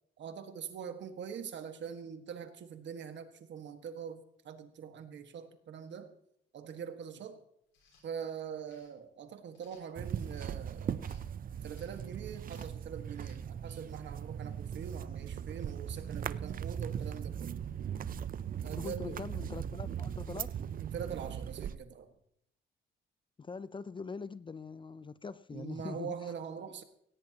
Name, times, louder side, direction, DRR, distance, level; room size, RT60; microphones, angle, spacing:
voice 1, 0.2-6.1 6.5-7.4 8.0-11.0 11.6-17.6 18.6-19.2 20.8-22.1 25.5-26.8, right 7 dB, 65° right, 1.7 m, -43 dB
sound 1, 7.7-8.1 8.7-8.9 9.5-10.5 11.0-11.3 11.7-12.1 12.4-12.8 13.1-13.4, left 4 dB, 80° left, 6.0 m, -65 dB
sound 2, 10.0-21.8, right 9 dB, 45° right, 0.5 m, -39 dB
voice 2, 18.7-20.6 23.4-26.3, left 4 dB, 25° left, 0.5 m, -43 dB
17.5 x 16.5 x 2.9 m
cardioid pair, 90°, 20 cm